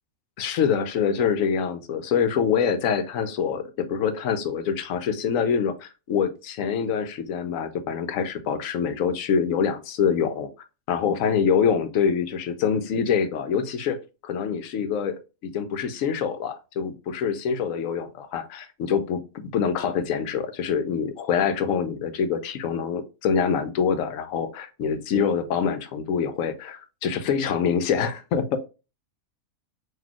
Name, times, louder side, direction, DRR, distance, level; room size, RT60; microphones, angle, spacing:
voice 1, 0.4-10.5 10.9-28.6, left 7 dB, 75° left, 10 dB, 1.0 m, -25 dB
4.0 x 2.7 x 2.9 m, 0.30 s
omnidirectional pair, 1.4 m